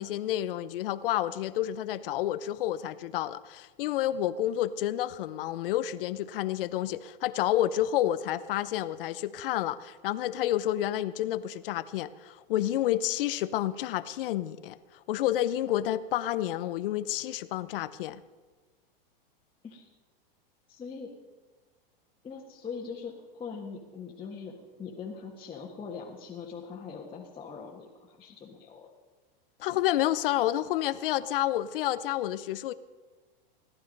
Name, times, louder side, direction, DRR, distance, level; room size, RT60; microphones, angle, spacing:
voice 1, 0.0-14.8 15.1-18.2 29.6-32.7, left 13 dB, 70° left, 13 dB, 0.8 m, -29 dB
voice 2, 20.7-21.1 22.2-28.9, left 5 dB, 20° left, -5 dB, 1.6 m, -42 dB
18.0 x 11.0 x 5.3 m, 1.3 s
supercardioid pair, 140°, 29 cm